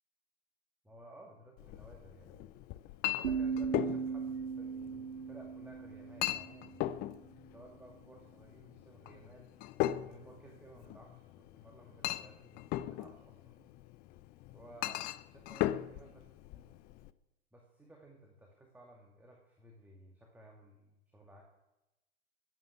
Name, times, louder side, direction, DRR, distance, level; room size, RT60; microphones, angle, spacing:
voice 1, 0.8-2.6 3.0-6.8 7.5-9.6 10.0-13.7 14.5-16.7 17.5-21.4, right 1 dB, 5° right, 0 dB, 2.3 m, -57 dB
Chink clink, 1.6-17.1, left 14 dB, 25° left, 0.6 m, -39 dB
sound 1, 3.2-7.1, right 6 dB, 75° right, 0.7 m, -38 dB
14.5 x 9.8 x 8.4 m, 0.97 s
figure-of-eight pair, 100°, 34 cm